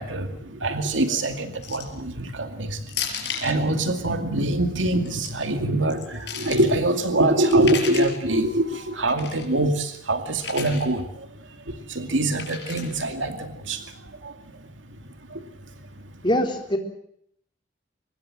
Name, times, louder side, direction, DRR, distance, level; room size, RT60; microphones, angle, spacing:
voice 1, 0.0-15.5, right 1 dB, 85° right, 7 dB, 2.4 m, -25 dB
sound 1, 1.6-2.0 2.9-3.6 4.9-5.3 5.9-6.6 7.5-8.2 9.1-9.4 10.4-10.8 12.4-13.0, left 7 dB, 60° left, 5.5 m, -33 dB
voice 2, 16.2-16.8, equal, 25° left, 4 dB, 3.6 m, -22 dB
25.0 x 20.0 x 7.7 m, 0.70 s
head